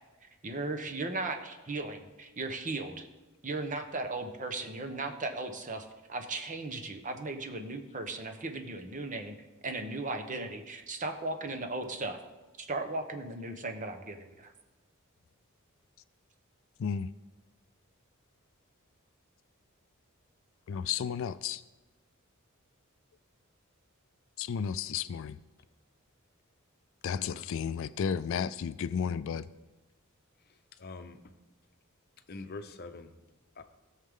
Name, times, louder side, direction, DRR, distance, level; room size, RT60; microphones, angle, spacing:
voice 1, 0.4-3.1 3.4-9.3 9.6-12.2 12.6-14.5, right 2 dB, 40° right, 6 dB, 1.0 m, -36 dB
voice 2, 20.7-21.6 24.4-25.4 27.0-29.5, left 7 dB, 65° left, 15 dB, 0.3 m, -33 dB
voice 3, 30.4-31.3 32.3-33.1 33.5-33.6, left 3 dB, 50° left, 8 dB, 0.7 m, -45 dB
17.0 x 6.5 x 3.7 m, 1.2 s
head